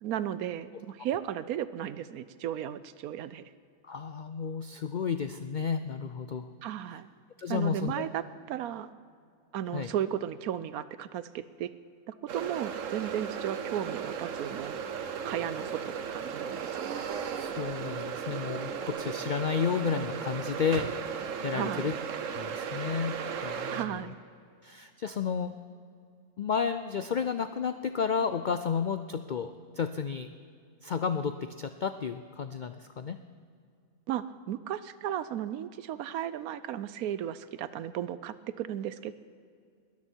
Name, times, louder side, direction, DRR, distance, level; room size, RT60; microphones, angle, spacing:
voice 1, 0.0-3.4 6.6-7.1 7.5-8.9 9.5-11.7 12.1-14.8 15.2-17.1 21.5-21.9 23.7-24.2 34.1-39.1, right 10 dB, 85° right, 15 dB, 1.1 m, -35 dB
voice 2, 3.8-6.5 6.9-7.0 7.4-8.0 9.7-9.9 16.9-21.2 21.4-21.9 22.3-24.1 24.6-25.6 26.4-30.3 30.8-33.2, left 6 dB, 85° left, 10 dB, 0.4 m, -32 dB
sound 1, 12.3-23.9, right 7 dB, 65° right, 1.2 m, -36 dB
21.0 x 13.5 x 4.5 m, 2.3 s
omnidirectional pair, 1.5 m